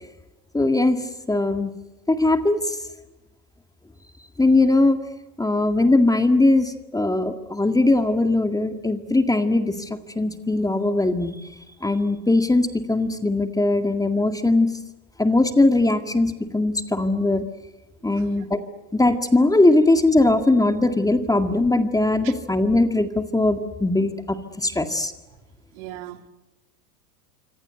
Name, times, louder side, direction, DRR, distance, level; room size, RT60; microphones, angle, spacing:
voice 1, 0.5-1.0 1.3-1.7 2.1-2.8 4.4-5.0 5.4-11.4 11.8-14.7 15.2-17.4 18.0-18.6 18.9-25.1, left 2 dB, 5° left, 1.9 m, -20 dB
voice 2, 25.7-26.3, right 13 dB, 60° right, 2.5 m, -39 dB
26.0 x 25.5 x 8.1 m
hypercardioid pair, 100°, 49 cm